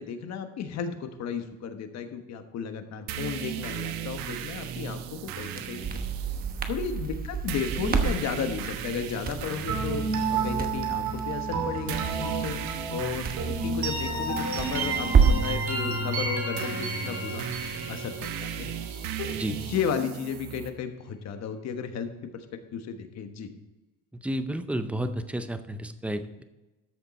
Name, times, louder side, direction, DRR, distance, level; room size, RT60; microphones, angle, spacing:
voice 1, 0.0-6.0 6.7-10.0 10.3-13.2 13.6-17.4 17.9-18.7 19.2-19.3 19.7-22.4 22.7-23.5, left 7 dB, 50° left, 7 dB, 1.2 m, -34 dB
sound 1, 3.1-20.7, right 10 dB, 75° right, 1.1 m, -37 dB
Crackle, 5.3-15.6, right 5 dB, 25° right, 1.0 m, -29 dB
sound 2, 9.7-19.4, right 3 dB, 55° right, 2.6 m, -31 dB
voice 2, 24.2-26.4, right 1 dB, 5° right, 9 dB, 0.5 m, -31 dB
13.5 x 6.7 x 4.2 m, 1.1 s
cardioid pair, 150°, 35 cm